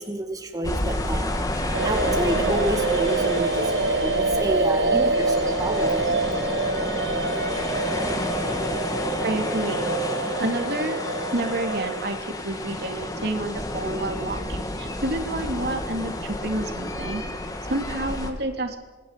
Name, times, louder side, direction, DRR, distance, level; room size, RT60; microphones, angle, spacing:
voice 1, 0.0-6.2, equal, 20° right, 4 dB, 2.1 m, -29 dB
sound 1, 0.6-18.3, left 1 dB, 20° left, 2.7 m, -30 dB
sound 2, 1.7-11.9, right 3 dB, 85° right, 4.8 m, -26 dB
voice 2, 9.2-9.9 10.4-11.0 11.3-17.2 17.7-18.8, right 1 dB, 55° right, 5 dB, 2.9 m, -29 dB
26.5 x 20.0 x 8.4 m, 1.2 s
head